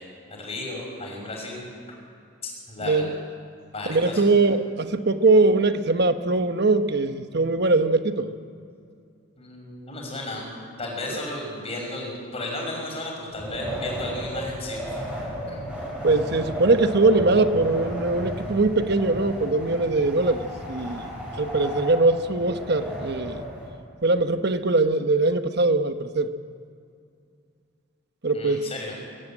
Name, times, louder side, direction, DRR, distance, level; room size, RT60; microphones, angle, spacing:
voice 1, 0.3-1.6 2.4-3.0 3.7-4.4 9.4-10.5 10.8-15.0 15.5-15.7 28.3-28.9, left 2 dB, 30° left, -1 dB, 5.9 m, -34 dB
voice 2, 2.8-3.2 3.9-8.3 16.0-21.1 21.4-23.4 24.0-26.3 28.2-28.7, right 3 dB, 55° right, 9 dB, 1.1 m, -21 dB
Wind, 13.3-23.7, equal, 5° right, 6.0 m, -34 dB
23.5 x 14.5 x 9.0 m, 2.4 s
head